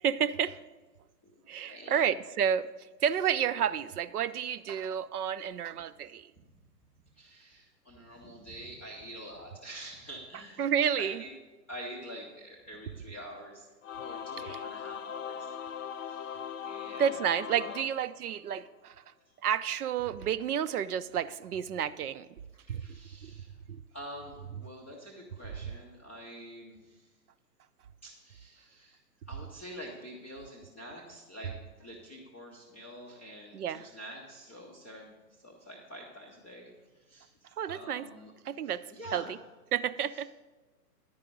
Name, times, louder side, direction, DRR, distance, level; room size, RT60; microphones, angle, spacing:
voice 1, 0.0-0.5 1.5-2.7 3.0-6.3 10.6-11.2 14.4-14.6 17.0-19.0 19.4-22.3 22.7-22.8 23.2-23.3 23.7-23.8 33.5-33.9 37.6-38.1 38.5-38.8 39.1-39.4 39.7-40.3, right 8 dB, 65° right, 14 dB, 0.5 m, -30 dB
voice 2, 1.7-2.0 5.7-5.8 7.1-10.7 11.0-11.3 11.7-13.7 14.0-15.5 16.1-17.2 17.6-17.8 19.3-19.4 22.5-23.5 23.9-27.1 28.0-29.0 29.3-38.3 38.6-39.3 40.1-40.2, equal, 10° left, -7 dB, 0.4 m, -47 dB
Singing / Musical instrument, 13.8-18.7, left 8 dB, 50° left, 0.6 m, -40 dB
10.5 x 4.8 x 6.6 m, 1.2 s
figure-of-eight pair, 130°, 49 cm